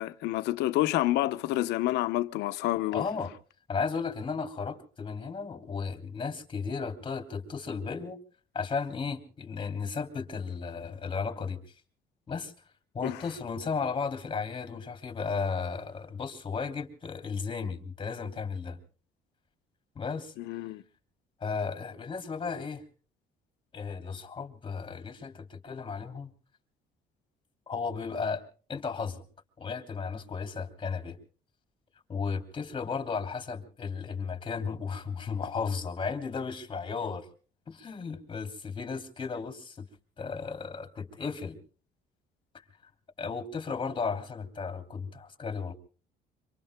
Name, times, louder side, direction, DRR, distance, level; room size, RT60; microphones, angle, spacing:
voice 1, 0.0-3.1 13.0-13.2 20.4-20.8, left 16 dB, 85° left, 0.8 m, -28 dB
voice 2, 2.9-3.3 3.7-8.2 8.5-11.6 12.3-12.5 12.9-18.8 19.9-20.3 21.4-22.8 23.7-26.3 27.7-28.4 28.7-29.2 29.6-31.2 32.1-37.3 37.7-39.9 40.2-41.6 43.2-45.7, left 5 dB, 30° left, 3.0 m, -34 dB
26.0 x 25.0 x 2.2 m
cardioid pair, 110°, 17 cm